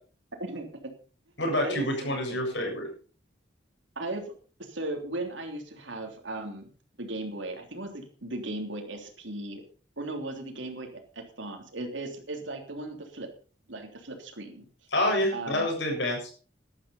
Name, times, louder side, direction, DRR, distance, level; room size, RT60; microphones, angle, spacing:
voice 1, 0.4-0.9 1.6-2.5 3.9-4.3 4.6-6.7 7.0-9.6 10.0-13.3 13.7-14.6 15.3-15.7, right 2 dB, 85° right, 3 dB, 3.3 m, -37 dB
voice 2, 1.4-2.9 14.9-16.2, left 1 dB, 75° left, 1 dB, 7.6 m, -27 dB
12.5 x 12.5 x 5.5 m, 0.39 s
head